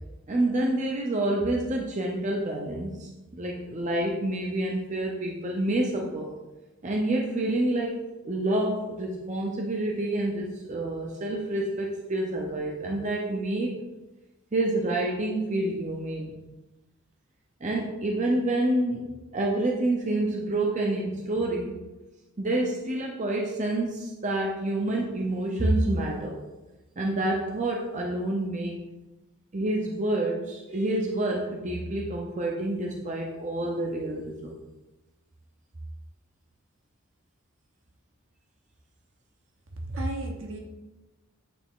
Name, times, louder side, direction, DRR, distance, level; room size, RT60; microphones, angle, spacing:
voice 1, 0.3-6.3 6.8-7.9 8.2-13.8 14.5-16.4 17.6-19.0 19.3-21.8 22.4-26.4 27.0-28.8 29.5-34.5, right 1 dB, 35° right, -1 dB, 0.6 m, -28 dB
voice 2, 39.7-40.6, right 1 dB, 65° right, 1 dB, 1.0 m, -32 dB
8.4 x 3.3 x 3.6 m, 1.1 s
head